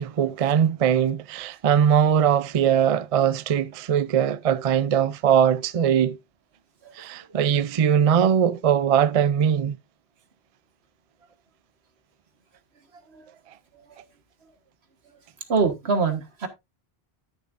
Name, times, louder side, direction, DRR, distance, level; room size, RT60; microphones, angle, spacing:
voice 1, 0.0-6.2 7.0-9.8, right 8 dB, 45° right, 0.5 m, -21 dB
voice 2, 15.5-16.5, right 4 dB, 80° right, 1.7 m, -24 dB
12.5 x 7.1 x 2.5 m
omnidirectional pair, 1.1 m